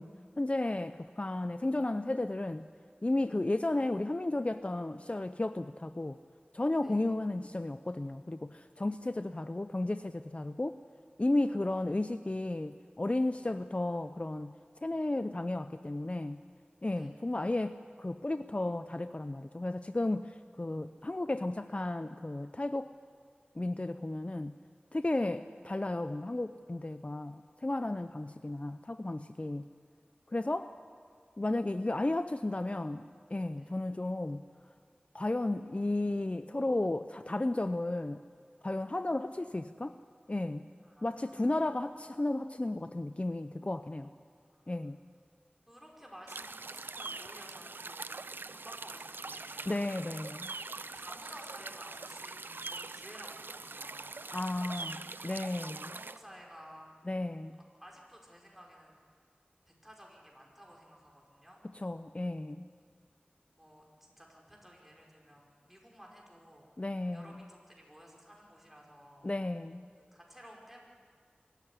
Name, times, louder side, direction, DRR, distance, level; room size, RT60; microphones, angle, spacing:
voice 1, 0.0-2.7 3.0-6.2 6.5-10.8 11.2-14.5 14.8-16.4 16.8-22.9 23.6-24.5 24.9-29.7 30.3-30.7 31.4-34.4 35.1-38.2 38.6-40.0 40.3-40.7 41.0-44.1 44.7-45.0 49.7-50.5 54.3-55.8 57.1-57.6 61.7-62.7 66.8-67.4 69.2-69.8, left 2 dB, 35° left, 11 dB, 0.5 m, -33 dB
voice 2, 40.8-41.7 44.5-44.9 45.7-49.7 50.9-54.2 54.8-55.1 55.6-56.9 57.8-59.0 59.7-61.6 63.6-66.7 67.1-69.3 70.0-70.8, equal, 5° right, -1 dB, 5.2 m, -54 dB
sound 1, 46.3-56.2, right 3 dB, 85° right, 0.5 m, -43 dB
24.0 x 14.0 x 9.8 m, 2.1 s
wide cardioid pair, 45°, 3 cm